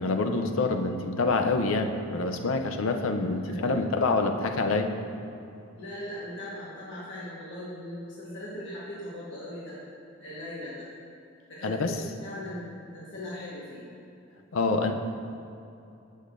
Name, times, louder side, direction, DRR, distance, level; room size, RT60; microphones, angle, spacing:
voice 1, 0.0-4.9 11.6-12.0 14.5-14.9, left 3 dB, 90° left, 5 dB, 0.6 m, -26 dB
voice 2, 5.7-9.8 10.2-10.9 11.5-13.8, left 1 dB, 60° left, -8 dB, 1.4 m, -39 dB
13.0 x 6.5 x 2.6 m, 2.7 s
head